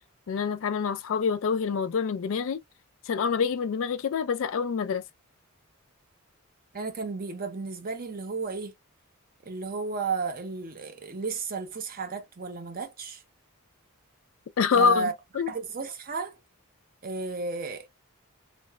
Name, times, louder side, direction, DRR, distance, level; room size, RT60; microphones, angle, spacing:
voice 1, 0.3-2.6 3.1-5.0 14.6-15.1 15.4-15.5, left 6 dB, 60° left, 0.3 m, -26 dB
voice 2, 6.7-8.7 9.4-13.2 14.7-15.1 15.5-16.4 17.0-17.9, right 4 dB, 40° right, 0.6 m, -33 dB
3.8 x 2.0 x 2.2 m
head